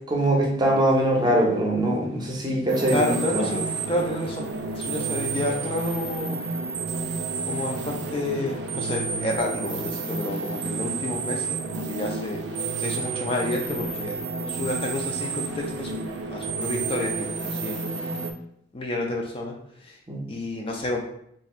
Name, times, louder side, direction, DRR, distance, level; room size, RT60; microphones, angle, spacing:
voice 1, 0.1-3.5 20.1-20.2, right 1 dB, 25° right, -1 dB, 0.7 m, -22 dB
sound 1, 2.7-18.3, right 4 dB, 65° right, 0.4 m, -30 dB
voice 2, 2.9-4.5 4.8-6.4 7.4-15.9 16.3-17.8 18.7-20.0 20.3-21.0, left 1 dB, 30° left, 0 dB, 0.4 m, -30 dB
2.7 x 2.5 x 4.1 m, 0.71 s
head